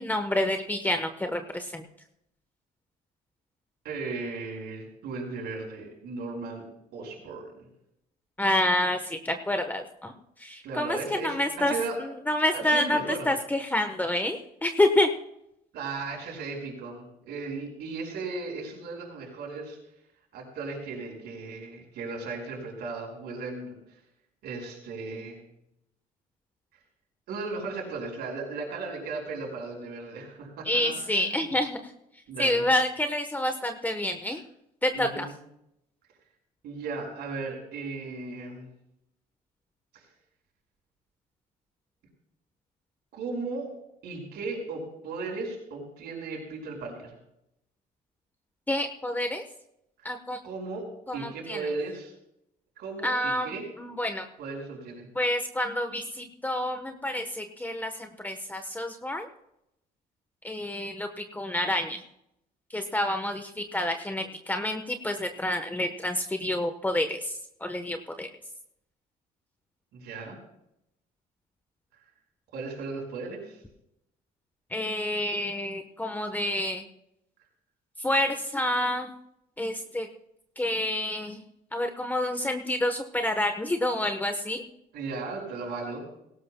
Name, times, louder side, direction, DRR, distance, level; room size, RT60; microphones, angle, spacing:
voice 1, 0.0-1.8 8.4-10.1 10.4-11.7 12.0-15.1 30.6-31.9 32.4-34.4 34.8-35.3 48.7-49.4 50.0-50.4 51.1-51.6 53.0-53.5 53.8-54.3 55.1-59.3 60.4-62.0 62.7-68.3 74.7-76.8 78.0-79.1 79.6-80.1 80.6-81.4 81.7-84.6, left 1 dB, 10° left, 6 dB, 1.1 m, -28 dB
voice 2, 3.8-6.7 6.9-7.7 10.6-12.0 12.5-13.3 15.7-19.8 20.3-23.8 24.4-25.4 27.3-31.5 32.3-32.6 34.9-35.3 36.6-38.7 39.9-40.1 43.1-43.7 44.0-47.2 50.4-50.9 51.1-52.1 52.8-53.6 54.4-55.1 69.9-70.4 72.5-73.6 84.9-86.0, right 3 dB, 75° right, 0 dB, 5.5 m, -36 dB
18.0 x 18.0 x 2.3 m, 0.80 s
cardioid pair, 110°, 17 cm